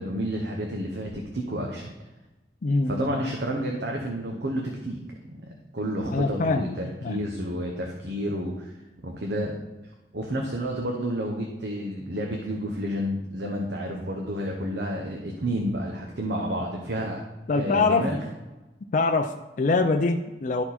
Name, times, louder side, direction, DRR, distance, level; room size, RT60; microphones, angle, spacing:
voice 1, 0.0-1.9 2.9-5.0 5.7-8.7 9.0-9.5 10.1-17.2 17.5-18.2, equal, 70° right, 0 dB, 1.0 m, -30 dB
voice 2, 2.6-3.2 6.1-6.7 7.0-7.2 17.5-18.1 18.9-20.6, left 3 dB, 45° left, 5 dB, 0.4 m, -24 dB
11.5 x 4.5 x 4.2 m, 1.1 s
head